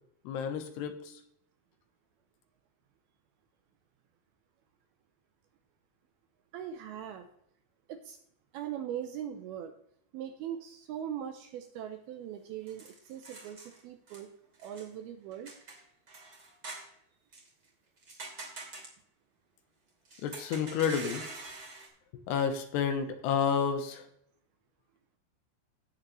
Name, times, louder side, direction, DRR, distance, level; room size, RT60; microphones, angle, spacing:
voice 1, 0.3-1.1 20.2-21.2 22.3-24.0, left 7 dB, 80° left, 7 dB, 3.0 m, -30 dB
voice 2, 6.5-7.3 7.9-8.2 8.5-9.7 10.1-14.3 14.6-15.6, right 10 dB, 80° right, 7 dB, 2.3 m, -40 dB
sound 1, 12.7-13.8 14.1-14.2 14.6-14.9 15.3-16.9 17.3-17.5 18.0-18.9 20.0-21.9, right 3 dB, 30° right, 2.6 m, -45 dB
17.0 x 6.6 x 3.2 m, 0.70 s
omnidirectional pair, 5.0 m